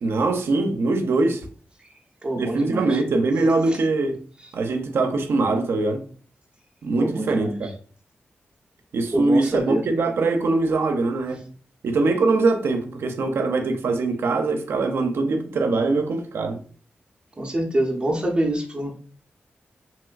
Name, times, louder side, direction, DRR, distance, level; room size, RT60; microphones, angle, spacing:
voice 1, 0.0-1.5 2.4-4.2 4.5-6.1 6.8-7.7 8.9-11.5 11.8-16.6, right 3 dB, 75° right, 0.5 m, -22 dB
voice 2, 2.2-3.0 3.7-3.8 7.0-7.6 9.1-9.8 17.4-18.9, right 1 dB, 25° right, 0.5 m, -25 dB
3.0 x 2.9 x 2.4 m
wide cardioid pair, 150°, 4 cm